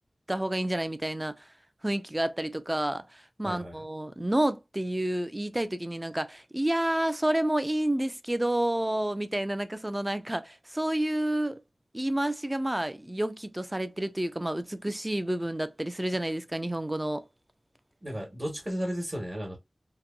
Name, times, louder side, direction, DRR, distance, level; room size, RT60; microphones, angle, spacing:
voice 1, 0.3-1.5 1.8-11.6 11.9-17.2, right 1 dB, 20° right, 0.3 m, -29 dB
voice 2, 3.4-3.8 18.0-19.6, equal, 35° right, 1.0 m, -34 dB
2.9 x 2.1 x 2.2 m
wide cardioid pair, 55°, 0 cm